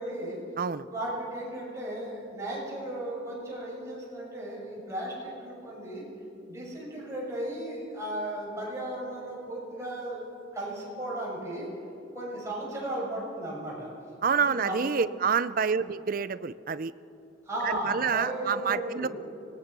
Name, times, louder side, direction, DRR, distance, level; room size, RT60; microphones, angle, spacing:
voice 1, 0.0-0.4 0.8-6.0 6.4-10.2 10.5-11.7 12.1-13.9 14.4-15.0 17.4-19.1, right 1 dB, 15° right, -5 dB, 6.8 m, -35 dB
voice 2, 14.2-16.9 17.6-19.1, right 6 dB, 45° right, 15 dB, 0.5 m, -28 dB
25.0 x 19.5 x 6.1 m, 2.7 s
head